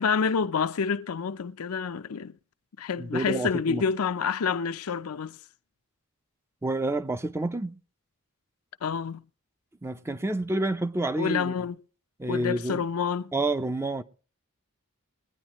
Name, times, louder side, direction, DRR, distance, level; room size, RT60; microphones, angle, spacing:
voice 1, 0.0-2.3 2.8-5.4 8.8-9.2 11.2-11.8 12.3-13.3, left 6 dB, 75° left, 0.5 m, -28 dB
voice 2, 3.0-3.8 6.6-7.8 9.8-11.5 12.2-12.8 13.3-14.0, right 2 dB, 10° right, 0.5 m, -29 dB
21.5 x 9.7 x 3.0 m
head